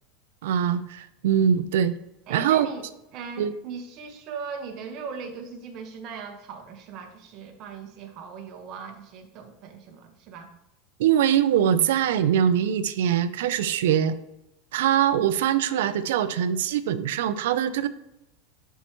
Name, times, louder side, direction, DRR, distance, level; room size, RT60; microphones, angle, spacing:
voice 1, 0.4-1.9 2.3-2.7 3.4-3.5 11.0-14.2 14.7-17.9, right 9 dB, 85° right, 13 dB, 0.5 m, -23 dB
voice 2, 2.3-2.8 3.1-10.5, right 5 dB, 45° right, 4 dB, 1.2 m, -39 dB
10.5 x 4.6 x 3.0 m, 0.89 s
supercardioid pair, 140°, 0 cm